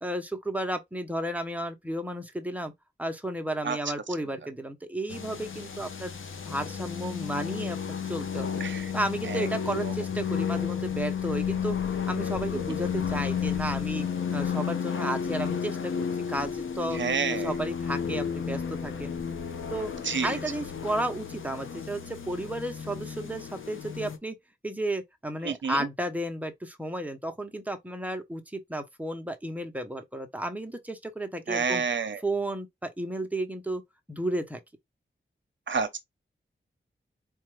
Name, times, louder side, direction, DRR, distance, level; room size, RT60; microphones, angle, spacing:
voice 1, 0.0-2.7 3.0-6.1 6.5-7.8 8.0-8.5 8.9-14.1 14.3-15.9 16.3-17.0 17.3-19.1 19.7-19.9 20.2-24.4 24.6-31.8 32.2-33.8 34.1-34.6, right 1 dB, 5° right, 0.7 m, -33 dB
sound 1, 5.1-24.2, left 7 dB, 90° left, 0.7 m, -32 dB
voice 2, 17.0-17.5 20.1-20.4 25.4-25.8 31.5-32.2 35.7-36.0, right 5 dB, 70° right, 0.7 m, -28 dB
4.2 x 2.3 x 3.1 m
wide cardioid pair, 115°, 20 cm